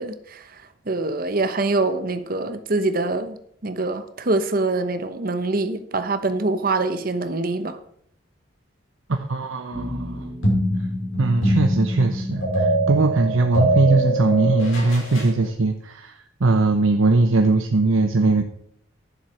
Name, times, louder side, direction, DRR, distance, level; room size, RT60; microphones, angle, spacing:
voice 1, 0.0-7.8, right 2 dB, 45° right, 0.9 m, -25 dB
voice 2, 9.1-10.3 11.2-18.4, right 3 dB, 80° right, 0.8 m, -20 dB
sound 1, 9.7-15.3, right 1 dB, 85° left, 5.8 m, -23 dB
11.0 x 7.3 x 6.3 m
head